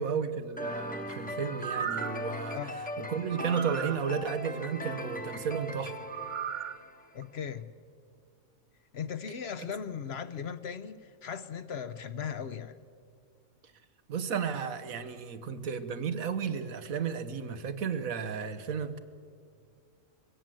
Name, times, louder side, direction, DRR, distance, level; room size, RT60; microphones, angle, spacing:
voice 1, 0.0-2.6 3.0-5.9 9.6-9.7 14.1-19.0, right 6 dB, 90° right, 1.5 m, -33 dB
sound 1, 0.6-7.2, left 1 dB, 5° left, 0.9 m, -39 dB
sound 2, 1.5-2.3 3.3-4.0 6.1-6.8 7.2-7.3, right 9 dB, 55° right, 0.9 m, -36 dB
voice 2, 7.1-7.7 8.9-12.8, left 7 dB, 55° left, 0.9 m, -38 dB
22.5 x 17.0 x 7.6 m
omnidirectional pair, 1.4 m